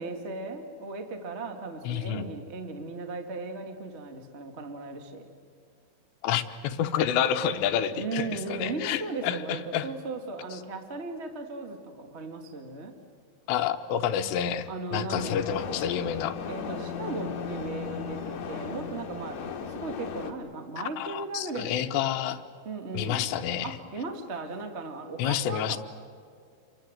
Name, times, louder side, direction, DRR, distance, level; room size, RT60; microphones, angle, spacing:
voice 1, 0.0-5.3 7.9-12.9 14.7-15.4 16.5-21.7 22.6-23.3 23.6-25.8, right 3 dB, 40° right, 5 dB, 0.9 m, -37 dB
voice 2, 1.9-2.3 6.2-9.9 13.5-16.4 21.0-22.4 22.9-23.7 25.2-25.8, left 9 dB, 85° left, 9 dB, 3.2 m, -29 dB
sound 1, 15.1-20.3, left 6 dB, 55° left, 2.3 m, -36 dB
28.0 x 23.5 x 7.9 m, 2.2 s
omnidirectional pair, 4.8 m